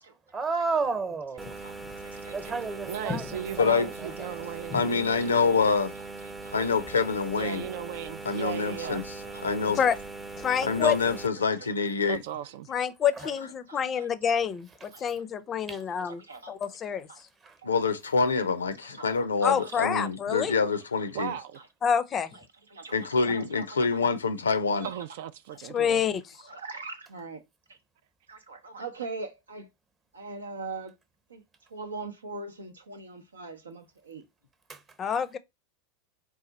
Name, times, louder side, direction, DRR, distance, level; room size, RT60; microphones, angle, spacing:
voice 1, 0.3-1.6 2.3-4.4 13.2-13.3 15.7-15.8 17.4-17.6 34.7-34.8, right 4 dB, 30° right, 0.9 m, -32 dB
sound 1, 1.4-11.3, right 3 dB, 15° right, 0.6 m, -41 dB
voice 2, 1.5-2.8 3.4-3.5 4.0-4.1 4.5-4.6 5.1-5.3 6.0-7.1 8.7-8.9 9.2-9.5 9.9-10.0 10.4-10.5 11.3-11.7 12.4-12.5 13.7-14.4 14.9-15.1 15.9-16.6 17.1-17.2 17.6-17.7 18.6-19.1 19.4-20.2 20.5-21.1 21.5-21.7 22.3-22.4 22.7-24.0 24.7-25.1 25.5-25.6 26.4-27.4 27.7-27.8 28.3-29.7 30.1-31.0 31.3-34.2, right 3 dB, 85° right, 0.7 m, -43 dB
voice 3, 2.9-4.9 7.4-9.0 12.1-12.7 21.1-21.6 24.8-26.0, right 9 dB, 65° right, 0.3 m, -36 dB
voice 4, 3.6-3.9 4.7-5.9 6.5-7.6 8.3-9.0 9.4-9.8 10.6-12.2 17.6-21.3 22.9-24.9, left 4 dB, 85° left, 0.5 m, -26 dB
voice 5, 10.4-11.0 12.7-16.2 16.5-17.1 19.4-20.6 21.8-22.3 25.7-26.2 35.0-35.4, left 7 dB, 30° left, 0.5 m, -27 dB
4.1 x 2.4 x 4.0 m
hypercardioid pair, 90°, 0 cm